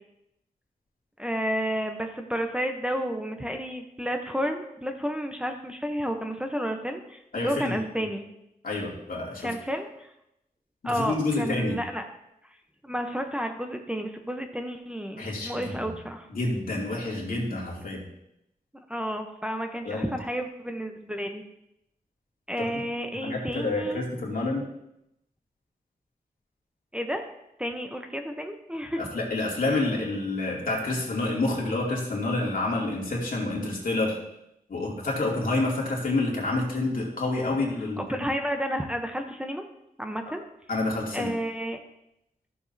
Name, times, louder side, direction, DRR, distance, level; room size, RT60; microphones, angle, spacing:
voice 1, 1.2-8.2 9.4-10.1 10.8-12.1 12.8-16.3 17.8-18.0 18.7-21.4 22.5-24.1 26.9-27.2 27.6-29.0 38.1-39.6 40.0-40.4 41.1-41.8, equal, 5° right, 3 dB, 0.8 m, -31 dB
voice 2, 7.3-7.8 8.6-9.5 10.8-11.8 15.2-15.9 16.3-18.0 19.8-20.1 22.6-22.7 23.2-24.6 29.0-34.2 34.7-38.0 40.7-41.3, left 2 dB, 65° left, -3 dB, 2.6 m, -28 dB
13.5 x 7.1 x 2.7 m, 0.82 s
wide cardioid pair, 80°, 16 cm